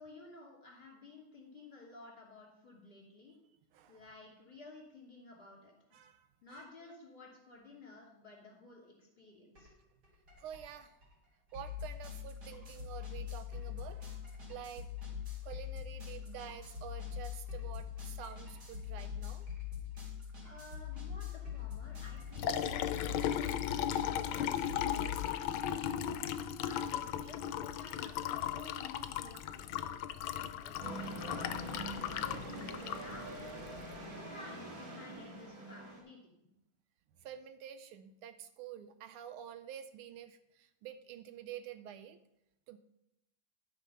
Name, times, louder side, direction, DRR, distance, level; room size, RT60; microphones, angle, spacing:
voice 1, 0.0-3.4 3.9-5.7 6.4-9.7 20.4-22.7 23.0-26.1 26.6-29.7 30.6-33.4 34.2-36.3, left 3 dB, 25° left, -3 dB, 2.9 m, -54 dB
sound 1, 9.5-9.7 10.0-25.2, left 8 dB, 45° right, 3.6 m, -43 dB
voice 2, 10.4-10.9 11.5-14.9 15.4-19.5 37.2-42.2 42.7-42.8, right 9 dB, 80° right, 10 dB, 1.5 m, -48 dB
Liquid, 22.1-34.0, left 10 dB, 75° left, 1.3 m, -37 dB
sound 2, 30.8-36.0, right 1 dB, 60° right, 3.1 m, -44 dB
11.5 x 5.4 x 5.6 m, 0.85 s
omnidirectional pair, 2.4 m